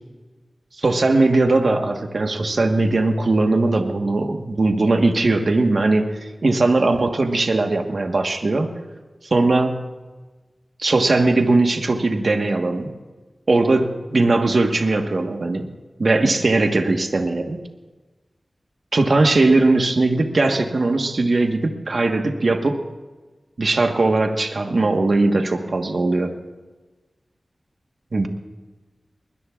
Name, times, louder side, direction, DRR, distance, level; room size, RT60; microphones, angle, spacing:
voice 1, 0.8-8.7 9.3-9.8 10.8-12.9 13.5-15.7 16.0-17.6 18.9-22.8 23.6-26.3 28.1-28.3, right 2 dB, 65° right, 5 dB, 1.3 m, -19 dB
22.0 x 20.5 x 2.4 m, 1.2 s
wide cardioid pair, 65°, 0 cm